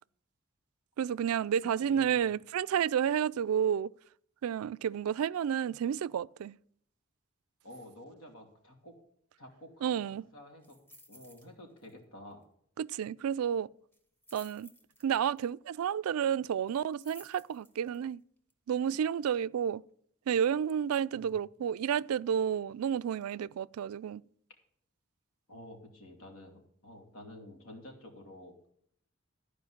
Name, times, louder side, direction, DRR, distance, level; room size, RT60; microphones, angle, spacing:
voice 1, 1.0-3.9 4.4-6.6 9.8-10.2 12.8-13.7 14.3-14.7 15.0-18.2 18.7-19.8 20.3-24.2, right 8 dB, 80° right, 0.3 m, -31 dB
voice 2, 1.8-2.2 7.6-8.9 9.4-10.8 11.1-12.4 21.1-21.3 25.5-28.7, left 1 dB, 80° left, 2.9 m, -50 dB
sound 1, 10.6-11.5 11.8-12.0 12.3-12.4 13.9-15.4 16.7-18.0 18.5-18.6, left 1 dB, 10° left, 1.4 m, -56 dB
13.5 x 5.1 x 7.2 m
head